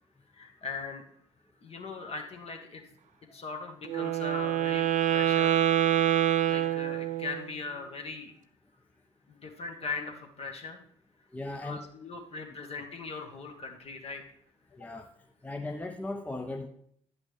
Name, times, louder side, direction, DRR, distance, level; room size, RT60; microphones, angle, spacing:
voice 1, 0.4-1.0 1.6-2.8 3.3-4.8 5.1-5.6 6.5-8.3 9.3-10.8 11.6-14.2, left 4 dB, 40° left, 3 dB, 1.5 m, -39 dB
Wind instrument woodwind instrument, 3.8-7.5, right 12 dB, 55° right, 0.6 m, -26 dB
voice 2, 11.3-11.8 14.8-15.1 15.4-16.7, left 2 dB, 10° left, 3 dB, 0.8 m, -37 dB
10.5 x 8.4 x 3.3 m, 0.67 s
figure-of-eight pair, 50°, 16 cm